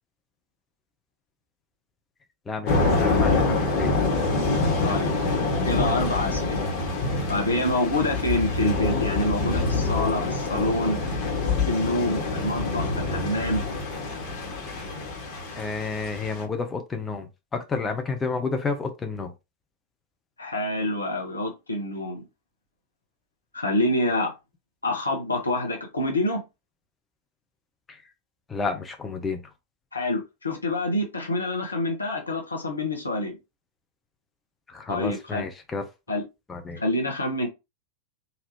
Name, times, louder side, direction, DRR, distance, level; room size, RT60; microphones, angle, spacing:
voice 1, 2.5-4.0 15.6-19.3 27.9-28.0 28.5-29.4 34.7-35.8 36.5-36.8, left 4 dB, 15° left, 0.8 m, -30 dB
Thunder / Rain, 2.7-16.4, left 3 dB, 40° left, 1.6 m, -26 dB
voice 2, 4.8-5.1 5.6-6.7 7.3-11.0 11.4-13.6 20.4-22.2 23.5-24.3 24.8-26.4 29.9-33.4 34.9-35.4 36.1-36.2 36.8-37.5, left 1 dB, 80° left, 1.2 m, -27 dB
4.0 x 2.8 x 3.1 m
figure-of-eight pair, 90°, 0 cm